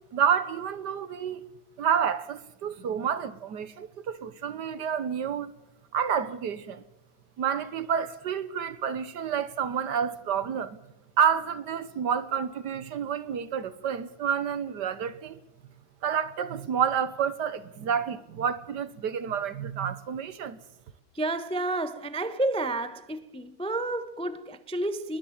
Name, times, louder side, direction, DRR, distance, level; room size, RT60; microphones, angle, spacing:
voice 1, 0.0-1.4 1.8-5.5 5.9-6.8 7.4-10.8 11.2-15.4 16.0-20.6, right 8 dB, 65° right, 1.5 m, -29 dB
voice 2, 21.1-25.2, right 2 dB, 5° left, 0.6 m, -30 dB
21.5 x 20.5 x 7.3 m
omnidirectional pair, 2.1 m